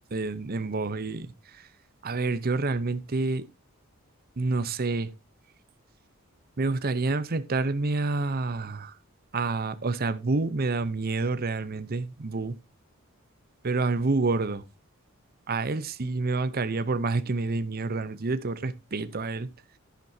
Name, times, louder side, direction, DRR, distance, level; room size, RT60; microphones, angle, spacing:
voice 1, 0.1-1.3 2.0-3.4 4.4-5.1 6.6-9.0 9.3-12.6 13.6-14.6 15.5-19.5, right 3 dB, 45° right, 0.7 m, -28 dB
10.5 x 10.5 x 2.7 m
head